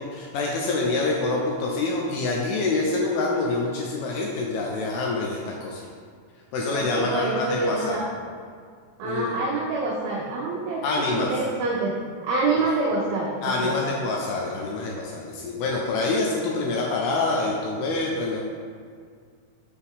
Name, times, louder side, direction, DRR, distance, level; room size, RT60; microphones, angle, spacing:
voice 1, 0.0-5.8 6.5-8.0 9.0-9.4 10.8-11.3 12.6-12.7 13.4-18.4, left 3 dB, 80° left, -2 dB, 2.3 m, -26 dB
voice 2, 6.7-8.1 9.0-11.9 12.2-13.8, right 3 dB, 85° right, -2 dB, 2.1 m, -26 dB
6.9 x 4.3 x 3.6 m, 2.1 s
omnidirectional pair, 4.9 m